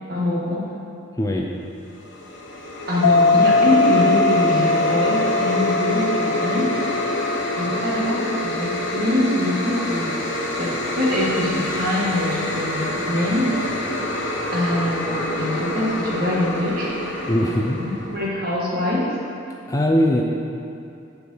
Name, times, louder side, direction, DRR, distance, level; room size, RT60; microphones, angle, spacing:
voice 1, 0.1-0.7 2.9-6.8 7.0-7.2 7.6-10.1 10.6-13.6 14.5-17.1 17.8-19.1, left 1 dB, 50° right, -5 dB, 1.7 m, -24 dB
voice 2, 1.2-1.5 17.2-17.8 19.7-20.2, left 1 dB, 15° left, 0 dB, 0.4 m, -20 dB
sound 1, 1.9-18.4, left 1 dB, 65° left, 1.0 m, -27 dB
sound 2, 3.0-10.1, left 3 dB, 85° left, 0.4 m, -22 dB
8.3 x 4.6 x 6.4 m, 2.6 s
head